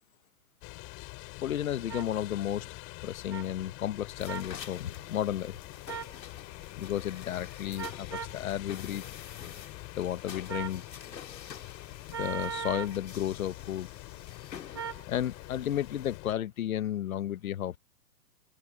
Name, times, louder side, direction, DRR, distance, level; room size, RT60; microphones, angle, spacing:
sound 1, 0.6-16.3, left 26 dB, 25° left, 6.2 m, -46 dB
voice 1, 1.4-2.7 3.0-5.6 6.8-9.0 10.0-10.8 12.1-13.9 15.1-17.8, left 11 dB, 55° left, 1.4 m, -33 dB
sound 2, 1.9-2.1 3.3-3.4 4.3-4.5 5.9-6.2 7.8-8.4 10.5-10.8 12.1-13.0 14.7-15.0, right 8 dB, 15° right, 0.5 m, -38 dB
sound 3, 4.2-16.2, left 8 dB, 80° left, 2.4 m, -48 dB
open air
hypercardioid pair, 150°, 50 cm